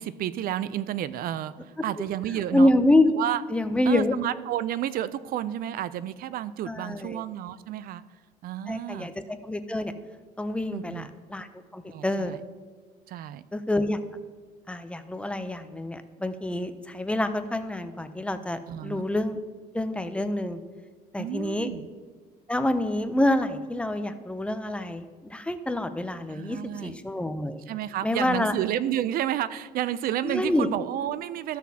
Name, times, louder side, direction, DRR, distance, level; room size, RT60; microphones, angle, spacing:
voice 1, 0.0-2.7 3.1-3.4 3.9-8.0 8.4-9.1 10.7-11.1 11.9-12.4 13.1-13.4 18.7-19.1 21.2-21.9 26.3-27.0 27.7-31.6, right 11 dB, 60° right, 16 dB, 0.4 m, -31 dB
voice 2, 2.5-3.1 3.5-4.1 6.7-7.2 8.7-9.9 10.4-11.5 11.7-12.4 13.5-14.0 14.7-19.4 19.7-20.6 21.1-21.7 22.5-27.6 28.0-28.5 30.2-30.7, left 1 dB, 5° left, 9 dB, 0.4 m, -27 dB
13.5 x 6.2 x 2.7 m, 1.5 s
cardioid pair, 110°, 17 cm